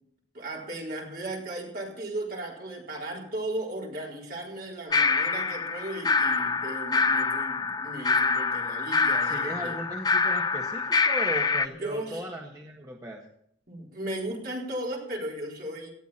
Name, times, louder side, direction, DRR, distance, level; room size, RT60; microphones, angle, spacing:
voice 1, 0.3-9.7 11.8-12.2 13.7-15.9, right 1 dB, 50° right, -2 dB, 4.4 m, -36 dB
sound 1, 4.9-11.7, left 4 dB, 20° left, 0.5 m, -26 dB
voice 2, 9.2-13.2, right 1 dB, 20° right, 0 dB, 1.5 m, -37 dB
18.5 x 13.0 x 4.4 m, 0.71 s
head